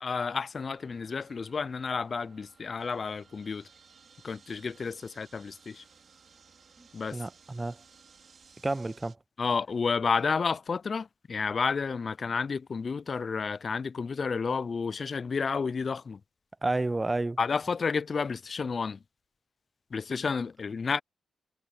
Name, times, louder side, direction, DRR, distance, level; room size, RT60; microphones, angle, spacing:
voice 1, 0.0-3.7 4.2-5.8 6.9-7.2 9.4-16.2 17.4-19.0 19.9-21.0, left 5 dB, 50° left, 0.4 m, -31 dB
sound 1, 0.6-9.1, right 5 dB, 60° right, 5.1 m, -58 dB
voice 2, 6.8-7.8 8.6-9.2 16.6-17.4, right 2 dB, 25° right, 0.3 m, -31 dB
cardioid pair, 75°, 0 cm